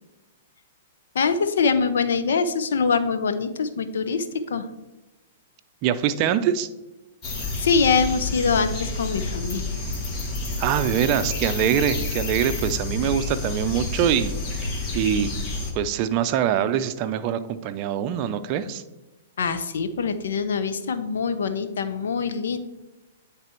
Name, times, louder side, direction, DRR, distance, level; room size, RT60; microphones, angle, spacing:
voice 1, 1.1-4.6 7.6-9.7 19.4-22.6, left 5 dB, 75° left, 9 dB, 0.7 m, -24 dB
voice 2, 5.8-6.7 10.6-14.7 14.9-15.3 15.7-18.8, right 9 dB, 40° right, 10 dB, 0.5 m, -24 dB
sound 1, 7.2-15.7, left 2 dB, 35° left, 1.5 m, -29 dB
9.4 x 3.4 x 4.4 m, 1.0 s
hypercardioid pair, 130°, 0 cm